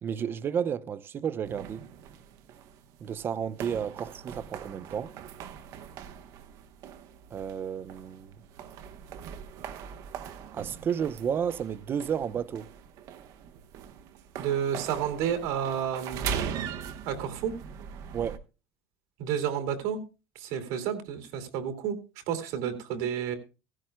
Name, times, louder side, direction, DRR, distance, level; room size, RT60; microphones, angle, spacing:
voice 1, 0.0-1.8 3.0-5.1 7.3-8.3 10.5-12.7 18.1-18.4, right 8 dB, 30° right, 0.7 m, -32 dB
sound 1, 1.4-18.4, right 8 dB, 55° right, 1.0 m, -41 dB
voice 2, 14.4-16.3 17.0-17.6 19.2-20.0 20.3-22.0 22.3-23.4, right 8 dB, 75° right, 2.5 m, -30 dB
15.5 x 15.5 x 2.2 m
cardioid pair, 130°, 7 cm